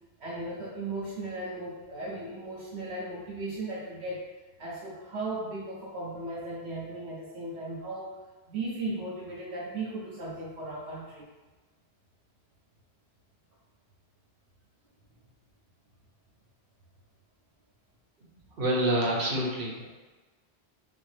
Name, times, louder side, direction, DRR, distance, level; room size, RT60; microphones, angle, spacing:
voice 1, 0.2-4.2 4.6-8.2 8.5-11.3, right 2 dB, 90° right, -6 dB, 1.1 m, -36 dB
voice 2, 18.6-19.9, right 1 dB, 60° right, -3 dB, 1.1 m, -27 dB
5.7 x 2.1 x 3.2 m, 1.2 s
omnidirectional pair, 1.1 m